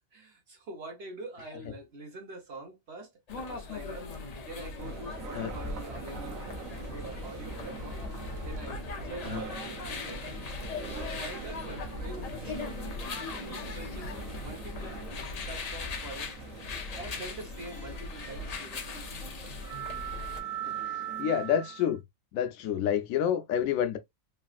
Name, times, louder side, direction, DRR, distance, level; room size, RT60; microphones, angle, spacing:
voice 1, 0.1-6.4 6.8-8.0 8.4-8.8 9.1-9.6 9.8-10.6 11.0-12.9 13.3-15.0 15.4-16.3 16.9-19.1, right 2 dB, 55° right, 1.1 m, -45 dB
sound 1, 3.3-20.4, left 3 dB, 60° left, 0.4 m, -39 dB
sound 2, 4.8-21.9, right 8 dB, 80° right, 1.1 m, -43 dB
voice 2, 21.2-22.0 22.3-24.0, left 9 dB, 85° left, 1.0 m, -28 dB
3.3 x 2.4 x 2.3 m
omnidirectional pair, 1.4 m